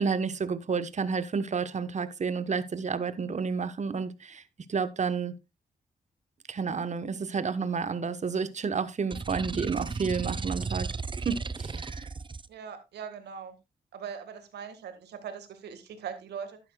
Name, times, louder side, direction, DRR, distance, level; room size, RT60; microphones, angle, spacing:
voice 1, 0.0-4.4 4.7-5.3 6.5-10.9 11.2-12.1, right 5 dB, 45° right, 1.0 m, -30 dB
sound 1, 9.1-12.5, right 4 dB, 30° right, 0.7 m, -35 dB
voice 2, 12.5-13.6 13.9-16.6, right 7 dB, 85° right, 1.6 m, -40 dB
11.5 x 9.9 x 2.3 m
supercardioid pair, 55°, 17 cm